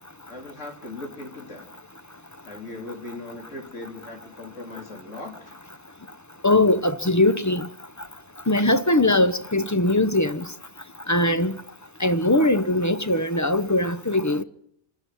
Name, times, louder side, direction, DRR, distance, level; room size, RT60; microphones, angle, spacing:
voice 1, 0.3-1.7 2.5-5.5, left 2 dB, 55° left, 4.0 m, -38 dB
voice 2, 6.4-7.7 8.5-10.4 11.1-11.5 12.0-14.4, left 1 dB, 20° left, 0.6 m, -21 dB
27.0 x 10.5 x 9.5 m
omnidirectional pair, 1.5 m